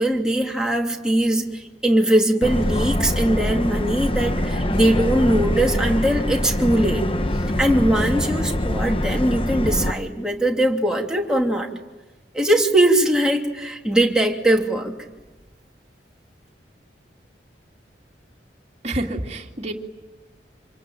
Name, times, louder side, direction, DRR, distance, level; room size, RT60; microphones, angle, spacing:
voice 1, 0.0-7.0 7.6-11.7 12.3-15.0, right 1 dB, 5° right, 0 dB, 3.0 m, -20 dB
Subway metro underground, 2.4-9.9, left 1 dB, 30° left, 1.1 m, -24 dB
voice 2, 18.8-19.7, right 1 dB, 35° right, 1 dB, 2.6 m, -28 dB
27.0 x 24.0 x 9.1 m, 1.1 s
head